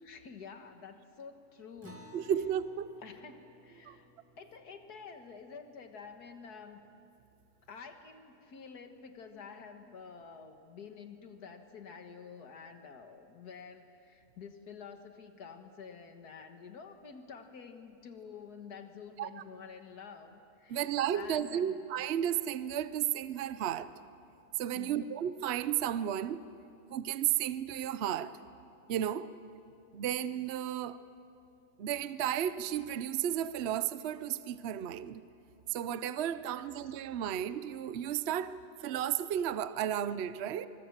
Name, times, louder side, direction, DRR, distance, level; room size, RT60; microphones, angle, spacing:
voice 1, 0.0-2.2 3.0-4.1 4.4-6.8 7.7-21.8 24.8-25.1, left 6 dB, 85° left, 6 dB, 2.0 m, -49 dB
Acoustic guitar, 1.8-6.7, equal, 10° right, 1.7 m, -57 dB
voice 2, 2.1-2.9 3.9-4.0 19.2-19.3 20.7-23.9 24.6-26.4 26.9-28.4 28.9-29.3 29.9-31.0 31.8-35.2 35.7-40.7, right 10 dB, 55° right, 14 dB, 0.8 m, -33 dB
24.5 x 22.5 x 7.3 m, 2.6 s
omnidirectional pair, 1.6 m